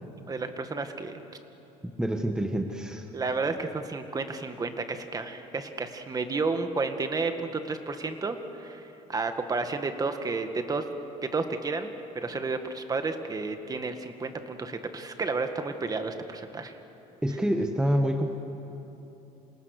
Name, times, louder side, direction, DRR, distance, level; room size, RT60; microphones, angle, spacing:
voice 1, 0.3-1.2 3.1-10.9 11.3-11.9 12.2-16.7, right 3 dB, 25° right, 7 dB, 1.8 m, -31 dB
voice 2, 1.8-3.1 17.2-18.3, equal, 5° right, 4 dB, 1.4 m, -27 dB
29.0 x 27.0 x 6.7 m, 3.0 s
cardioid pair, 120°, 15 cm